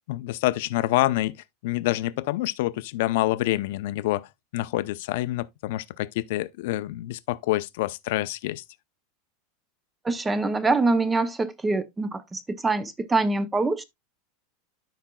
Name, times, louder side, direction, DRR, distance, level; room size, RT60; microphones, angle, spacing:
voice 1, 0.1-4.3 4.5-8.6, left 16 dB, 65° left, 0.5 m, -27 dB
voice 2, 10.0-13.8, right 3 dB, 10° right, 0.6 m, -24 dB
13.0 x 5.0 x 2.2 m
supercardioid pair, 160°, 0 cm